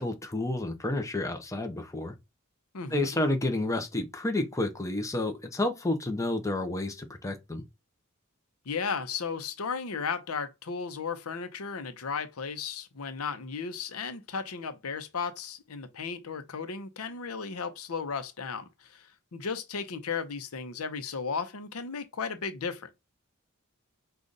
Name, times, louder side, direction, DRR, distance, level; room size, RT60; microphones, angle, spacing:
voice 1, 0.0-2.1 2.9-7.6, left 2 dB, 15° left, 0.8 m, -30 dB
voice 2, 2.7-3.2 8.7-22.9, left 5 dB, 90° left, 0.7 m, -35 dB
5.0 x 2.4 x 3.9 m
head